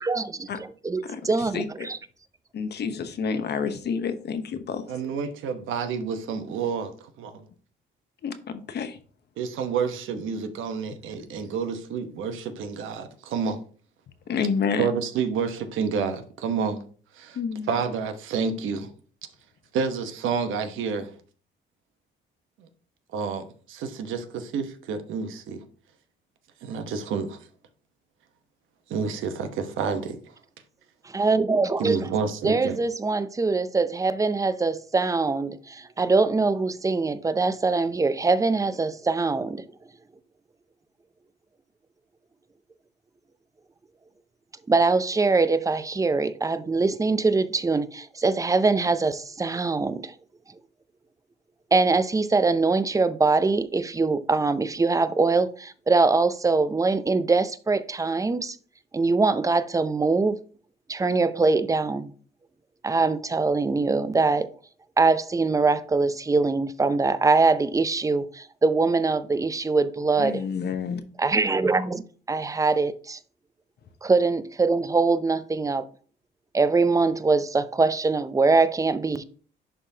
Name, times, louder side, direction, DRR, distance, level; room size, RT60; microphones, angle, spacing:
voice 1, 0.0-2.0 31.1-32.0 32.4-39.7 44.7-50.1 51.7-58.6 58.9-60.4 60.9-62.1 62.8-64.5 65.0-70.4 71.2-72.0 72.3-73.2 74.0-75.8 76.5-79.2, right 3 dB, 15° right, 0.5 m, -23 dB
voice 2, 1.0-1.9 2.5-4.8 8.2-9.0 14.3-14.9 17.3-17.7 70.2-71.0, left 6 dB, 55° left, 0.9 m, -29 dB
voice 3, 4.9-7.4 9.4-13.6 14.8-16.8 17.2-17.4 17.7-18.9 19.7-21.1 23.1-25.6 26.6-27.4 28.9-30.2 31.8-32.8, right 6 dB, 85° right, 1.0 m, -29 dB
11.0 x 3.7 x 2.8 m
cardioid pair, 90°, 20 cm